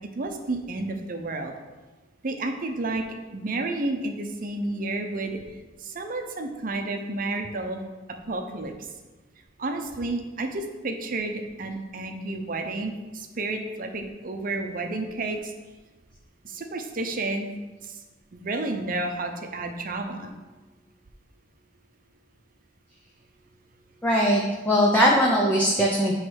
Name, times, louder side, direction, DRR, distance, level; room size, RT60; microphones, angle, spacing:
voice 1, 0.1-1.5 2.2-3.0 3.3-5.4 5.8-7.8 8.1-8.7 9.6-15.5 16.4-17.5 17.8-17.9 18.3-20.3, right 2 dB, 50° right, 5 dB, 0.7 m, -31 dB
voice 2, 24.0-26.2, equal, 10° left, -3 dB, 0.6 m, -20 dB
7.9 x 3.2 x 4.7 m, 1.2 s
head